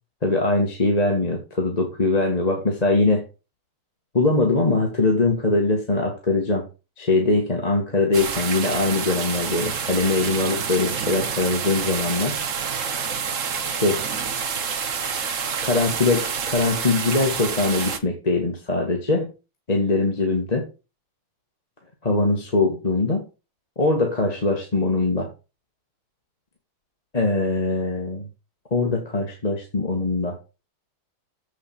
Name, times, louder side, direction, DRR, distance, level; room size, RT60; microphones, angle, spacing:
voice 1, 0.2-3.3 4.1-6.7 7.0-12.3 13.6-14.0 15.6-19.3 19.7-20.7 22.0-23.2 23.8-25.3 27.1-28.3 28.7-30.4, left 2 dB, 20° left, 1 dB, 1.6 m, -22 dB
sound 1, 8.1-18.0, right 6 dB, 45° right, 1.2 m, -28 dB
7.9 x 6.4 x 5.8 m, 0.30 s
omnidirectional pair, 2.3 m